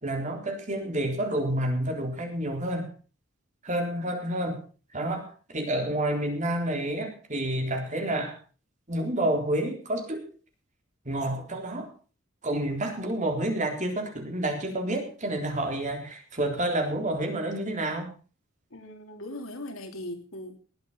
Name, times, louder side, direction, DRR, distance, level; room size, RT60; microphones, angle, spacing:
voice 1, 0.0-2.9 3.6-4.6 4.9-8.4 8.9-10.2 11.1-11.9 12.4-18.1, right 1 dB, 35° right, 3 dB, 3.7 m, -29 dB
voice 2, 18.7-20.6, left 1 dB, 80° left, 5 dB, 3.0 m, -39 dB
20.0 x 8.3 x 5.6 m, 0.37 s
head